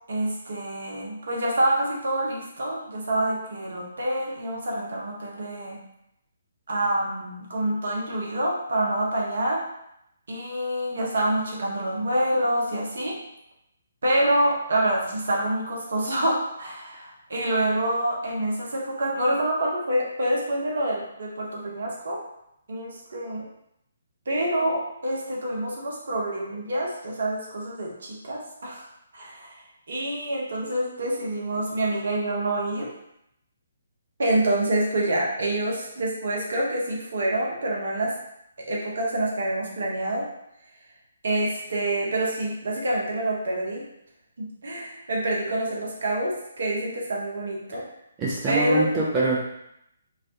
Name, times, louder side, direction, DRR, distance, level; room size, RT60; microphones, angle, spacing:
voice 1, 0.1-5.8 6.7-9.6 10.3-13.2 14.0-22.2 22.7-23.4 24.3-28.9 29.1-32.9 34.2-38.1 38.7-40.2 41.2-43.8 44.4-47.8 48.5-49.0, right 1 dB, 55° right, -2 dB, 0.7 m, -27 dB
voice 2, 48.2-49.4, right 2 dB, 20° right, -6 dB, 0.4 m, -24 dB
2.3 x 2.1 x 2.7 m, 0.79 s
figure-of-eight pair, 135°, 0 cm